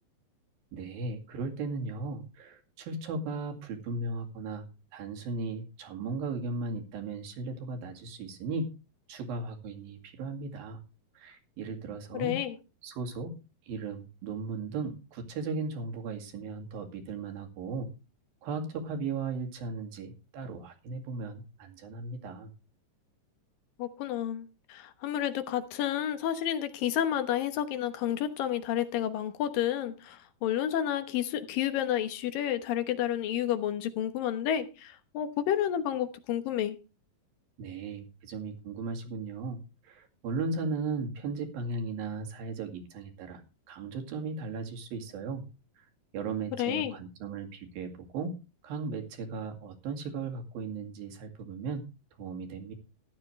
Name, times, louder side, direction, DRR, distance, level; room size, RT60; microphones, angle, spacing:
voice 1, 0.7-4.7 4.9-8.7 9.1-10.8 11.2-12.4 12.8-13.3 13.7-17.9 18.4-22.5 37.6-43.4 43.7-45.4 46.1-48.4 48.6-51.9 52.2-52.7, right 4 dB, 90° right, 4.1 m, -36 dB
voice 2, 12.1-12.5 23.8-36.8 46.6-46.9, left 11 dB, 75° left, 2.8 m, -30 dB
14.5 x 12.0 x 3.2 m
omnidirectional pair, 4.0 m